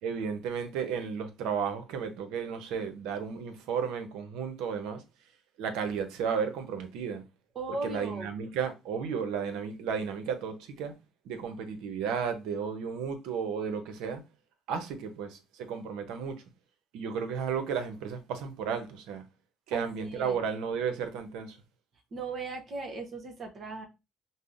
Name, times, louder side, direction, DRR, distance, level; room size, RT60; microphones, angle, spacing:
voice 1, 0.0-5.0 5.6-7.2 7.8-10.9 11.2-14.2 14.7-16.3 16.9-19.2 19.7-21.6, right 6 dB, 85° right, 0.7 m, -33 dB
voice 2, 7.5-8.3 19.7-20.4 22.1-23.9, right 3 dB, 50° right, 0.8 m, -38 dB
5.3 x 2.0 x 2.4 m
supercardioid pair, 85°, 0 cm